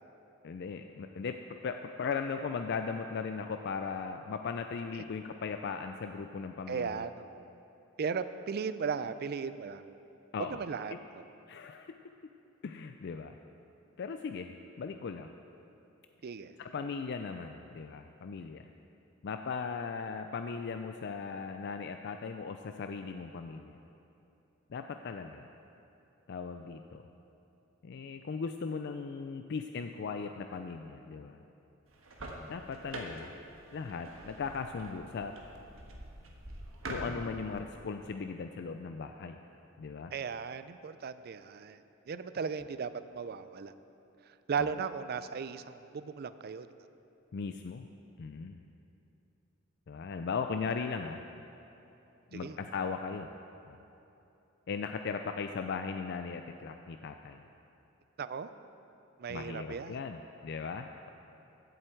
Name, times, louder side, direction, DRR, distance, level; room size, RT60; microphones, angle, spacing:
voice 1, 0.4-7.0 10.3-10.6 10.9-11.0 11.5-11.9 12.6-13.4 14.0-15.3 16.6-18.7 19.2-23.8 24.7-25.5 26.3-27.0 27.8-31.4 32.5-33.3 33.7-35.4 36.9-39.4 39.8-40.1 44.6-44.8 47.3-47.9 48.2-48.6 49.9-51.2 52.3-53.3 53.7-53.8 54.7-57.4 59.3-61.1, left 5 dB, 60° left, 6 dB, 0.4 m, -38 dB
voice 2, 6.7-7.4 8.0-9.8 10.6-10.9 16.2-16.5 40.1-41.8 42.1-43.7 44.5-46.7 52.3-52.6 58.2-58.5 59.2-60.0, right 6 dB, 50° right, 13 dB, 0.4 m, -36 dB
sound 1, 31.9-37.6, right 1 dB, 85° right, 1.4 m, -45 dB
15.5 x 7.9 x 4.5 m, 2.9 s
head